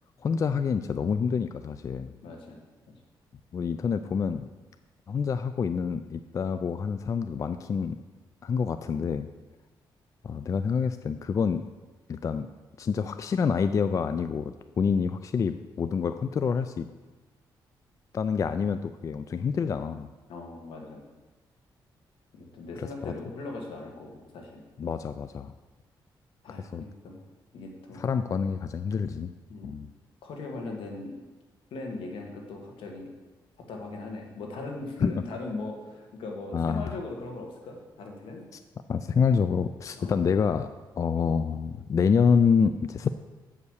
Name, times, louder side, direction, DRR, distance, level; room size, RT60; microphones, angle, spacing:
voice 1, 0.2-2.1 3.5-4.5 5.1-8.0 8.4-9.3 10.2-11.6 12.1-12.5 12.8-16.9 18.1-20.1 23.0-23.1 24.8-25.5 26.7-26.8 27.9-29.3 29.6-29.9 35.0-35.1 36.5-36.8 38.9-40.7 41.0-43.1, left 6 dB, 40° left, 10 dB, 0.3 m, -27 dB
voice 2, 2.2-2.6 20.3-21.1 22.3-24.6 26.4-27.2 27.5-28.0 29.5-29.8 30.2-31.2 31.7-33.1 33.7-38.4 40.0-40.2, left 3 dB, 85° left, 1 dB, 1.8 m, -39 dB
8.0 x 5.5 x 6.4 m, 1.2 s
cardioid pair, 100°, 9 cm